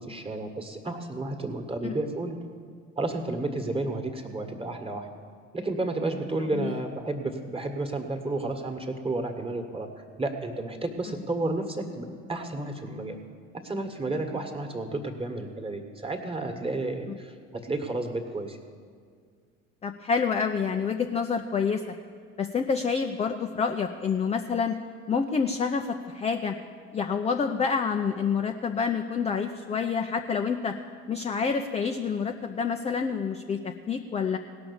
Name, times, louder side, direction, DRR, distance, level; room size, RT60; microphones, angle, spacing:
voice 1, 0.0-2.4 3.0-5.1 5.5-13.2 13.5-18.6, right 2 dB, 15° right, 4 dB, 1.5 m, -32 dB
voice 2, 19.8-21.9 22.4-24.8 25.1-26.6 26.9-30.8 31.1-34.4, left 5 dB, 15° left, 5 dB, 0.5 m, -28 dB
17.5 x 6.0 x 7.1 m, 2.1 s
figure-of-eight pair, 60°, 40 cm